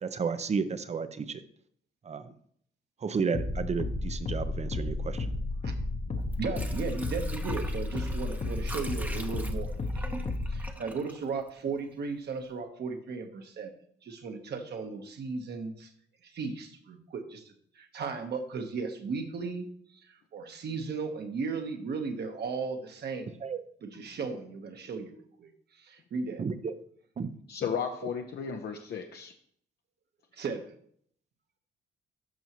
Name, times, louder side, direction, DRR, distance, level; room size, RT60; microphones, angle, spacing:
voice 1, 0.0-1.4 2.0-2.3 3.0-5.4 23.4-23.6 26.4-26.7 27.2-27.3, right 5 dB, 35° right, 12 dB, 0.6 m, -32 dB
sound 1, 3.3-10.7, left 2 dB, 35° left, 0.9 m, -33 dB
Water / Sink (filling or washing), 6.2-12.0 12.4-12.5, right 1 dB, 10° right, 0.8 m, -44 dB
voice 2, 6.4-13.7 14.0-15.9 16.2-19.7 20.1-23.4 23.8-25.5 25.8-26.4 30.3-30.6, right 4 dB, 55° right, 5 dB, 1.3 m, -36 dB
voice 3, 27.5-29.3, left 6 dB, 55° left, 3 dB, 0.7 m, -34 dB
12.5 x 5.5 x 3.1 m, 0.65 s
cardioid pair, 90°, 20 cm